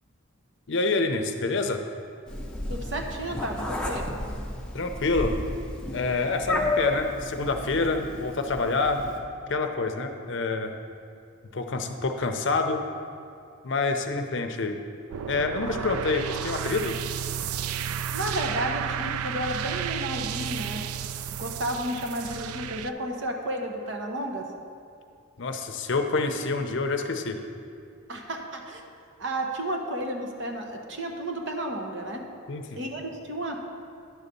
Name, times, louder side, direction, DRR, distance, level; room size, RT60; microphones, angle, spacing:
voice 1, 0.7-1.8 4.7-5.4 5.9-9.1 9.5-10.7 11.5-12.8 13.6-14.8 15.3-17.0 25.4-27.4 32.5-32.8, left 3 dB, 55° left, 6 dB, 0.6 m, -27 dB
Meow, 2.3-9.2, left 1 dB, 5° left, 0.6 m, -32 dB
voice 2, 2.7-4.0 18.1-20.8 21.3-24.5 28.1-28.8 29.2-32.2 32.7-33.6, right 1 dB, 55° right, 2 dB, 0.9 m, -32 dB
sound 1, 15.1-22.9, right 8 dB, 90° right, 0.3 m, -32 dB
10.5 x 4.0 x 6.7 m, 2.4 s
head